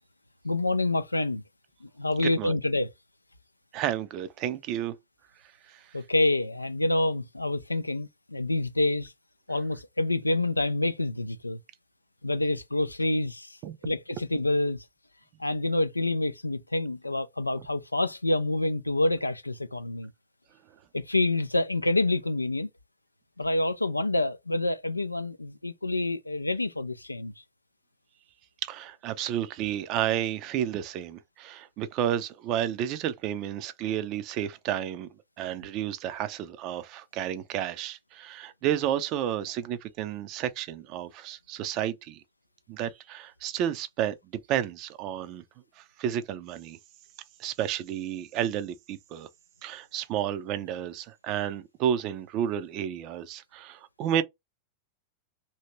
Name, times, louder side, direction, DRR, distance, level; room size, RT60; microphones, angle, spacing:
voice 1, 0.4-1.4 1.8-2.9 5.9-9.1 9.5-11.6 12.2-13.6 13.8-14.8 15.4-20.1 20.9-22.7 23.4-27.3, left 2 dB, 85° left, 0.3 m, -27 dB
voice 2, 2.2-2.6 3.7-4.9 5.7-6.0 13.6-13.8 28.6-35.1 35.4-42.2 42.7-44.2 44.5-45.4 45.8-46.8 47.4-49.3 49.6-54.2, right 10 dB, 40° right, 0.5 m, -31 dB
2.8 x 2.8 x 3.0 m
figure-of-eight pair, 90°, 0 cm